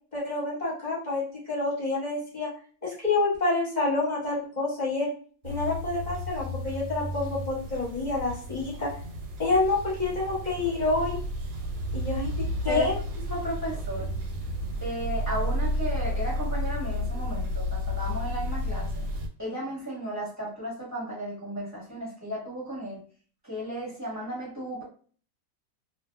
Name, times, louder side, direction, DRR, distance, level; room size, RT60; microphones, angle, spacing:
voice 1, 0.1-2.5 2.8-5.1 5.4-8.9 9.4-11.2 11.9-12.9, left 3 dB, 35° left, -7 dB, 0.8 m, -28 dB
sound 1, 5.4-19.3, equal, 90° right, 1.3 m, -32 dB
voice 2, 13.3-14.1 14.8-18.9 19.4-23.0 23.4-24.8, equal, 15° right, -7 dB, 0.8 m, -34 dB
2.5 x 2.5 x 2.3 m, 0.43 s
omnidirectional pair, 1.9 m